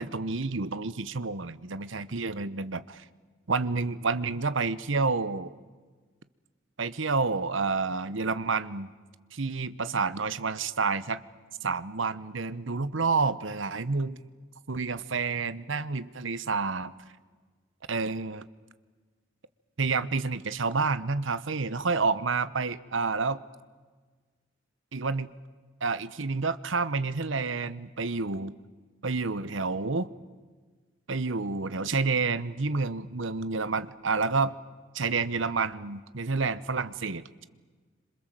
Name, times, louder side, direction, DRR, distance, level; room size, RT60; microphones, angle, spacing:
voice 1, 0.0-3.0 3.5-5.5 6.8-8.9 9.3-11.2 11.6-14.2 14.7-16.9 17.9-18.5 19.8-23.4 24.9-25.4 25.8-28.5 29.0-30.1 31.1-34.6 34.9-37.4, right 4 dB, 70° right, 15 dB, 1.0 m, -29 dB
27.0 x 26.5 x 7.6 m, 1.4 s
head